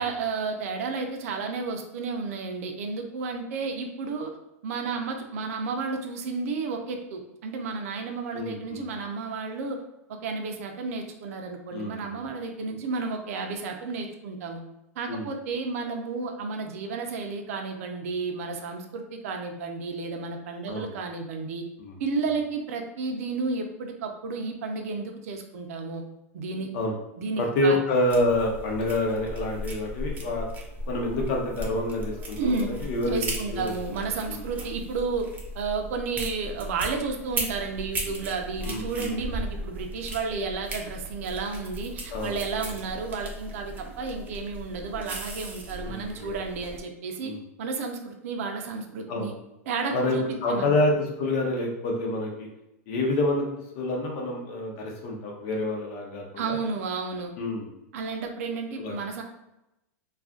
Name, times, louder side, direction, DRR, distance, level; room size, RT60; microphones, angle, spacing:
voice 1, 0.0-4.3 4.6-9.8 10.2-14.6 15.0-21.6 22.0-26.0 26.3-26.7 27.2-27.8 32.4-32.7 33.1-35.2 35.5-47.3 47.6-49.3 49.7-50.7 56.4-57.3 57.9-59.2, right 4 dB, 70° right, 3 dB, 0.5 m, -32 dB
voice 2, 8.3-8.9 11.7-12.2 15.1-15.3 20.7-20.9 21.8-22.0 26.7-26.9 27.4-30.5 30.9-34.0 34.3-34.4 38.6-39.2 42.1-42.4 45.8-46.4 47.2-47.4 49.1-49.3 49.9-52.5 52.9-56.6 57.4-57.7 58.8-59.0, left 1 dB, 55° left, 0 dB, 0.8 m, -28 dB
sound 1, 28.1-46.8, right 1 dB, 20° right, 0.6 m, -37 dB
2.4 x 2.3 x 3.6 m, 0.91 s
hypercardioid pair, 130°, 8 cm